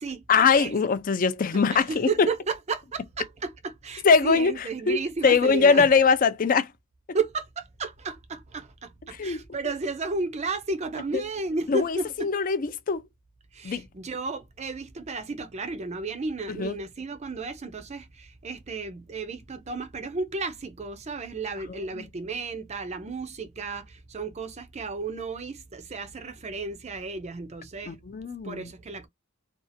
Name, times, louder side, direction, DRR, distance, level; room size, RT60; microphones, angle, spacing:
voice 1, 0.3-2.3 4.0-4.5 4.9-6.7 9.2-9.4 11.1-11.2 11.7-13.0 13.6-13.8 16.6-16.7 22.0-22.1 27.9-28.7, left 5 dB, 40° left, 0.4 m, -22 dB
voice 2, 1.7-5.9 7.1-12.4 13.5-28.0 28.4-29.1, right 3 dB, 30° right, 0.5 m, -33 dB
2.7 x 2.4 x 2.5 m
head